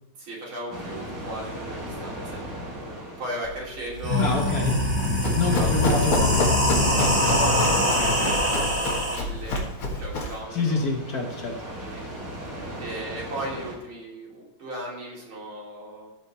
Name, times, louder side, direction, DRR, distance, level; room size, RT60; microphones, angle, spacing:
voice 1, 0.2-2.4 3.2-4.8 5.3-6.1 7.2-10.9 11.8-12.0 12.8-16.1, right 1 dB, 80° right, -4 dB, 3.8 m, -36 dB
sound 1, 0.7-13.7, equal, 60° right, 4.7 m, -40 dB
sound 2, 3.4-3.5 3.9-9.2, left 1 dB, 20° right, 3.2 m, -23 dB
voice 2, 4.2-4.9 5.3-6.5 8.0-8.4 10.5-11.6, left 3 dB, 50° left, 3 dB, 1.4 m, -27 dB
Run, 4.9-10.4, left 2 dB, 85° left, 2.6 m, -29 dB
13.5 x 5.1 x 4.2 m, 1.0 s
omnidirectional pair, 2.3 m